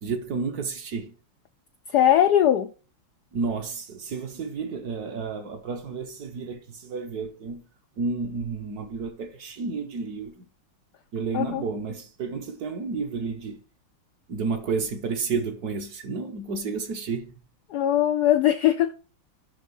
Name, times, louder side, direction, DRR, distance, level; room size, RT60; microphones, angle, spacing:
voice 1, 0.0-1.1 3.3-7.6 8.0-10.5 11.1-13.6 14.3-17.3, right 4 dB, 55° right, 1.4 m, -31 dB
voice 2, 1.9-2.7 11.3-11.6 17.7-18.9, left 11 dB, 80° left, 0.9 m, -20 dB
11.0 x 3.6 x 5.3 m
omnidirectional pair, 2.2 m